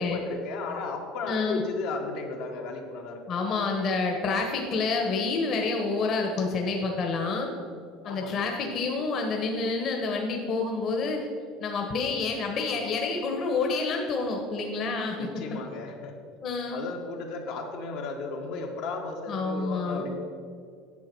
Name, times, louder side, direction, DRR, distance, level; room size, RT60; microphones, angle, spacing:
voice 1, 0.0-3.6 6.4-6.5 8.0-8.5 15.2-16.1 16.7-20.2, left 3 dB, 65° left, 1 dB, 1.8 m, -35 dB
voice 2, 1.3-1.6 3.3-7.5 8.0-11.2 11.6-15.6 16.4-16.8 19.3-20.1, left 4 dB, 35° left, 1 dB, 1.3 m, -28 dB
10.5 x 8.0 x 6.2 m, 2.3 s
cardioid pair, 155°, 0 cm